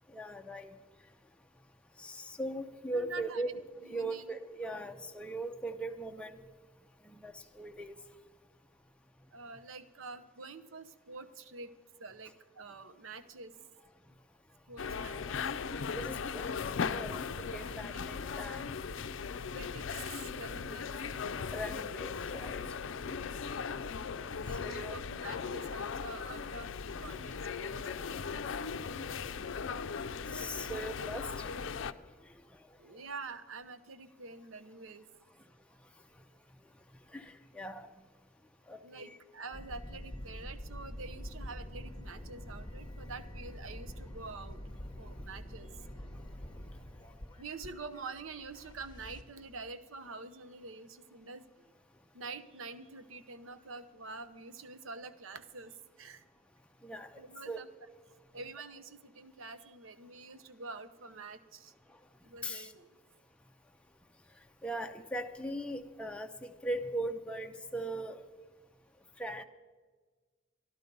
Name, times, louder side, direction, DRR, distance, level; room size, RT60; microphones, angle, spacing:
voice 1, 0.1-0.8 2.0-6.4 7.0-8.0 14.8-15.5 15.9-16.5 16.9-18.7 21.5-22.6 24.6-25.0 27.0-27.2 30.3-31.5 32.2-32.3 37.1-37.9 38.7-39.2 56.8-57.6 62.4-62.7 64.6-68.2 69.2-69.4, right 1 dB, 5° left, 0.5 m, -40 dB
voice 2, 2.9-3.4 3.8-4.3 9.3-11.7 12.0-13.5 14.7-15.4 17.8-18.0 19.5-20.9 24.4-26.7 27.0-27.9 32.8-35.0 38.8-44.6 45.0-45.8 47.4-51.7 52.1-56.2 57.2-57.7 58.3-61.7 62.2-62.9, right 4 dB, 80° right, 0.8 m, -47 dB
sound 1, 14.8-31.9, left 5 dB, 65° left, 0.5 m, -38 dB
sound 2, 39.5-49.2, equal, 20° left, 0.9 m, -46 dB
13.0 x 11.5 x 5.3 m
head